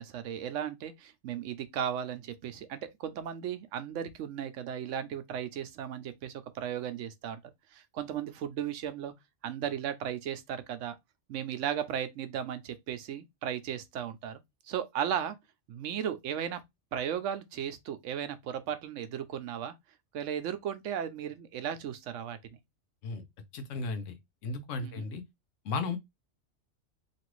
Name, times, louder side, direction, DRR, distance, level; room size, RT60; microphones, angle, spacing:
voice 1, 0.0-7.4 7.7-9.1 9.4-10.9 11.3-14.4 14.7-15.4 15.7-16.6 16.9-19.7 20.1-22.4 24.8-25.1, right 9 dB, 80° right, 0.9 m, -35 dB
voice 2, 23.5-24.2 24.4-25.2 25.6-26.0, left 4 dB, 90° left, 1.1 m, -34 dB
3.0 x 2.5 x 3.0 m
omnidirectional pair, 1.3 m